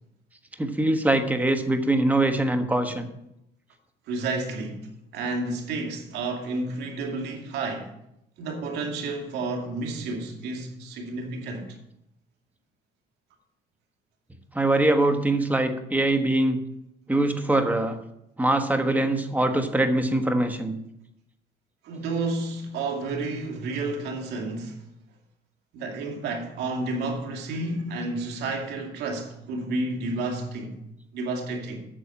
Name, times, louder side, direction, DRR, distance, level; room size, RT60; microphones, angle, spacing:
voice 1, 0.6-3.1 14.5-16.6 17.1-18.0 18.4-20.8, right 1 dB, 10° right, 1.3 m, -23 dB
voice 2, 4.1-7.9 8.4-11.8 21.8-24.8 25.7-30.8 31.1-31.8, right 3 dB, 80° right, 2.4 m, -31 dB
8.9 x 6.8 x 7.1 m
cardioid pair, 110°, 17 cm